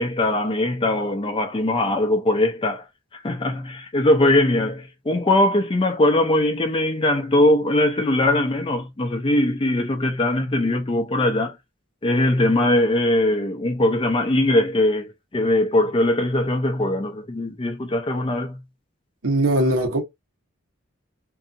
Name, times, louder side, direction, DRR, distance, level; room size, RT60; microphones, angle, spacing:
voice 1, 0.0-2.8 3.1-11.6 12.0-18.6, left 1 dB, 25° left, 0.5 m, -21 dB
voice 2, 19.2-20.0, right 1 dB, 85° right, 1.0 m, -20 dB
2.7 x 2.5 x 2.4 m
head